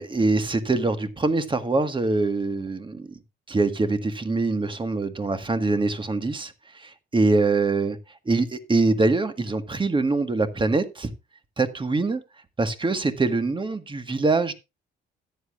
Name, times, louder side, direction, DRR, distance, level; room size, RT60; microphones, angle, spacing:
voice 1, 0.0-3.2 3.5-8.0 8.2-11.1 11.6-12.2 12.6-14.5, right 3 dB, 25° right, 1.7 m, -24 dB
14.0 x 10.0 x 2.5 m
cardioid pair, 90°, 20 cm